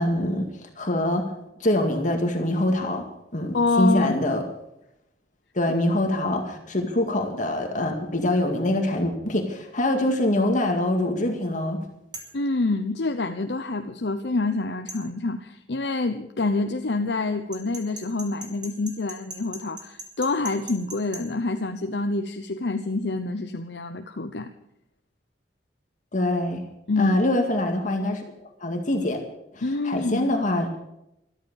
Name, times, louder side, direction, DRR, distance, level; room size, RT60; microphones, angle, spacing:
voice 1, 0.0-1.3 1.6-3.1 3.3-4.4 5.5-11.8 26.1-26.6 27.0-28.2 28.6-29.2 29.5-30.8, left 1 dB, 45° left, 3 dB, 2.1 m, -24 dB
voice 2, 3.5-4.2 12.3-24.5 26.9-27.2 29.6-30.3, left 3 dB, 70° left, 7 dB, 0.9 m, -27 dB
sound 1, 12.1-12.4 14.9-15.0 17.5-21.2, right 2 dB, 25° right, 3.4 m, -39 dB
13.5 x 13.5 x 7.3 m, 0.83 s
head